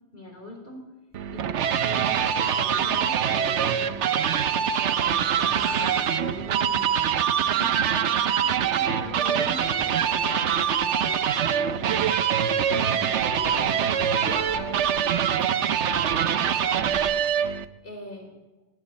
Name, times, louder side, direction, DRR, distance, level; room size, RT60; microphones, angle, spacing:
voice 1, 0.1-0.8 1.3-15.7 16.2-17.1 17.8-18.3, left 1 dB, 55° left, 2 dB, 4.6 m, -41 dB
sound 1, 1.1-11.3 11.7-11.8 12.1-12.2 12.9-17.4, equal, 10° right, 7.0 m, -47 dB
sound 2, 1.1-17.6, right 8 dB, 90° right, 1.1 m, -24 dB
20.0 x 15.5 x 4.2 m, 1.1 s
omnidirectional pair, 1.1 m